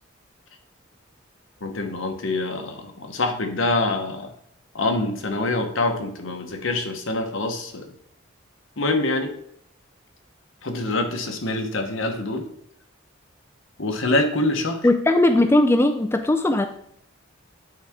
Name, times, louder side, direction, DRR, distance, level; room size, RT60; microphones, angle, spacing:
voice 1, 1.6-4.3 4.7-7.9 8.8-9.3 10.6-12.5 13.8-14.8, left 2 dB, 70° left, 5 dB, 1.1 m, -25 dB
voice 2, 14.8-16.7, left 1 dB, 10° left, 6 dB, 0.4 m, -18 dB
9.8 x 4.8 x 3.6 m, 0.68 s
head